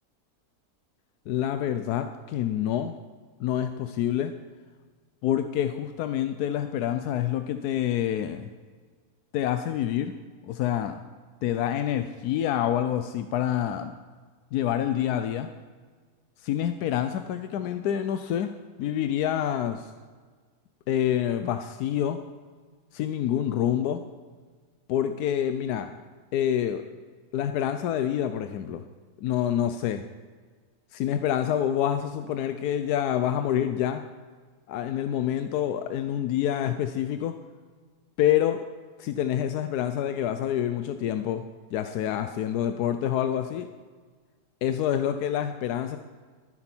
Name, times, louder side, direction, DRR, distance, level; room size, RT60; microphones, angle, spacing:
voice 1, 1.3-2.9 3.4-4.3 5.2-8.5 9.3-10.1 10.5-11.0 11.4-13.9 14.5-15.5 16.4-19.9 20.9-22.2 22.9-24.0 24.9-25.9 26.3-26.8 27.3-28.8 29.2-30.0 30.9-34.0 34.7-37.3 38.2-38.6 39.0-41.4 41.7-43.7 44.6-46.0, left 10 dB, 85° left, 9 dB, 1.1 m, -27 dB
13.0 x 11.0 x 4.4 m, 1.5 s
omnidirectional pair, 1.6 m